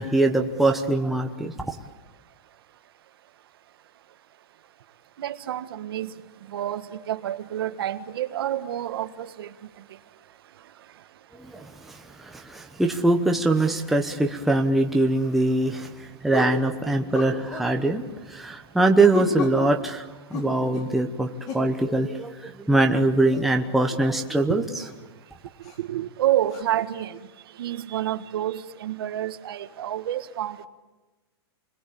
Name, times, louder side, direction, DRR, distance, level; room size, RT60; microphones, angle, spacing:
voice 1, 0.0-1.5 11.5-11.6 12.3-15.9 16.2-18.0 18.3-20.0 20.3-21.3 21.5-24.6, right 2 dB, ahead, 2 dB, 1.0 m, -22 dB
voice 2, 5.2-6.1 6.5-9.5 24.5-24.6 25.8-27.2 27.6-30.7, right 12 dB, 60° right, 10 dB, 1.6 m, -28 dB
sound 1, 15.2-15.4 16.3-16.6 17.1-17.7 19.1-19.6 20.3-20.9 21.5-21.7 23.3-23.4 24.1-24.3 24.8-24.9 25.6-25.8 26.5-26.6, left 4 dB, 30° left, 4.1 m, -32 dB
29.0 x 21.5 x 8.6 m, 1.2 s
supercardioid pair, 170°, 14 cm